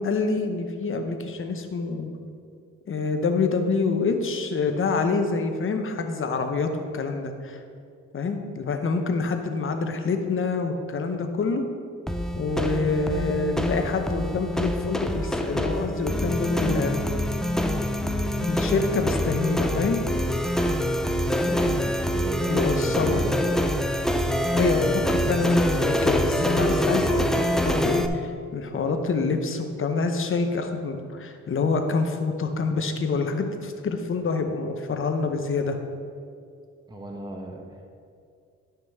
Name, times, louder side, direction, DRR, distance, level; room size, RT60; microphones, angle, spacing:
voice 1, 0.0-2.1 2.9-7.6 8.1-11.7 12.4-17.0 18.4-20.0 22.5-23.2 24.5-35.8, left 4 dB, 45° left, 6 dB, 0.9 m, -26 dB
sound 1, 12.1-28.1, equal, ahead, 0.4 m, -25 dB
voice 2, 21.4-23.7 36.9-37.9, right 1 dB, 15° right, 1 dB, 1.0 m, -35 dB
11.5 x 5.9 x 3.6 m, 2.4 s
cardioid pair, 90°, 30 cm